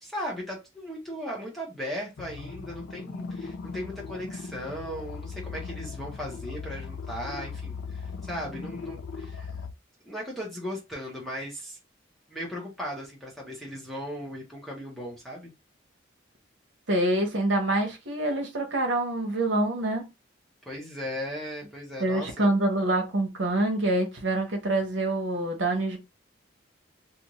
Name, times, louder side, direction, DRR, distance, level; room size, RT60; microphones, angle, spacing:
voice 1, 0.0-9.5 10.0-11.8 12.3-15.5 20.7-22.5, equal, ahead, 0.8 m, -37 dB
sound 1, 2.2-9.7, left 5 dB, 80° left, 0.4 m, -38 dB
voice 2, 16.9-20.1 22.0-26.0, right 1 dB, 70° right, 0.9 m, -26 dB
2.5 x 2.5 x 3.0 m
head